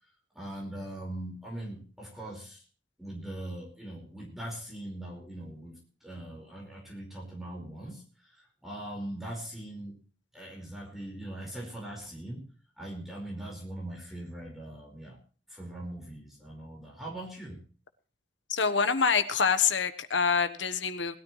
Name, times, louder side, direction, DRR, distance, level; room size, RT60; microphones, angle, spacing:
voice 1, 0.0-2.6 3.0-10.0 10.3-12.5 12.8-15.2 15.5-17.6, right 1 dB, ahead, -4 dB, 5.1 m, -41 dB
voice 2, 18.5-21.2, left 5 dB, 85° left, 10 dB, 1.3 m, -26 dB
20.5 x 13.0 x 3.3 m, 0.39 s
head